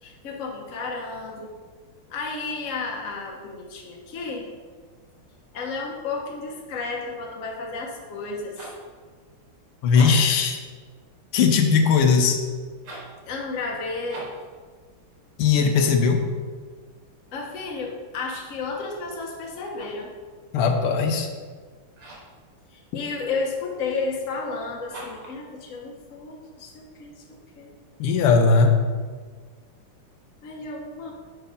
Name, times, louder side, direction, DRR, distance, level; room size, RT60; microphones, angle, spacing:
voice 1, 0.0-1.5 2.1-4.5 5.5-8.6 13.3-14.3 17.3-20.1 22.7-27.2 27.6-27.7 30.4-31.1, left 4 dB, 45° left, 0 dB, 1.1 m, -32 dB
sound 1, 8.6-8.9 9.8-10.4 12.8-13.2 14.1-14.5 19.5-20.1 21.9-22.4 24.9-25.4, right 2 dB, 80° right, 2.4 m, -40 dB
voice 2, 9.8-10.6 11.3-12.4 15.4-16.2 20.5-21.3 28.0-28.7, left 5 dB, 85° left, 5 dB, 1.6 m, -19 dB
6.4 x 4.6 x 5.2 m, 1.5 s
omnidirectional pair, 2.4 m